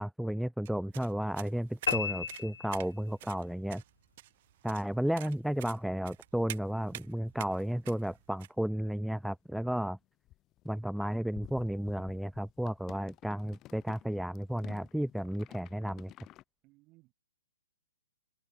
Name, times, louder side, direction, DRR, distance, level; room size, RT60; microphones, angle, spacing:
voice 1, 0.0-3.8 4.6-10.0 10.6-16.1, equal, ahead, 0.8 m, -33 dB
sound 1, 0.7-8.5, right 16 dB, 45° right, 1.9 m, -48 dB
sound 2, 1.9-3.4, left 7 dB, 70° left, 1.5 m, -34 dB
voice 2, 4.7-5.2 16.6-17.1, right 22 dB, 30° right, 6.1 m, -63 dB
sound 3, 8.0-8.1 8.6-8.7 8.9-9.2 9.5-9.6 10.0-16.4, left 15 dB, 25° left, 4.0 m, -53 dB
hypercardioid pair, 130°, 0 cm